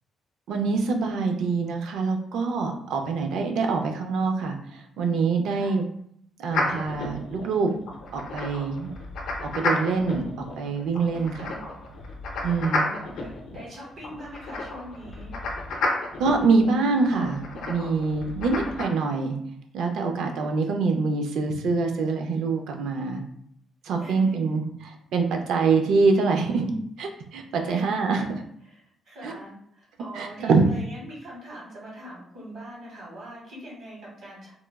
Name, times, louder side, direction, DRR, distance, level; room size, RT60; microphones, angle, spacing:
voice 1, 0.5-5.8 6.4-7.7 8.1-8.9 9.5-11.5 12.4-12.8 16.2-19.4 19.7-23.2 23.8-24.7 25.1-26.7 27.0-28.4 29.2-29.3 30.2-30.6, right 4 dB, 70° right, 4 dB, 0.4 m, -25 dB
sound 1, 6.5-18.9, left 2 dB, 65° left, 0.5 m, -32 dB
voice 2, 11.1-11.8 12.4-15.4 18.2-18.8 24.0-24.6 27.6-28.1 28.6-34.5, equal, 50° right, -5 dB, 1.1 m, -43 dB
3.0 x 2.3 x 2.2 m, 0.69 s
cardioid pair, 170°, 0 cm